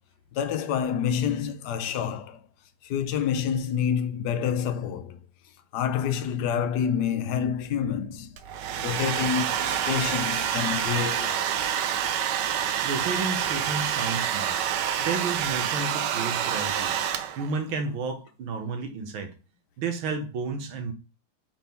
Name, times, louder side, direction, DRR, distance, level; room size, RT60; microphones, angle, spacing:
voice 1, 0.3-2.4 2.8-5.2 5.7-8.3 8.8-11.5, left 8 dB, 65° left, 1.2 m, -28 dB
Domestic sounds home sounds, 8.4-17.6, right 9 dB, 70° right, 1.2 m, -27 dB
voice 2, 12.8-14.6 15.0-16.9 17.4-19.3 19.8-20.9, right 4 dB, 85° right, 2.0 m, -31 dB
7.9 x 3.7 x 4.4 m
omnidirectional pair, 2.2 m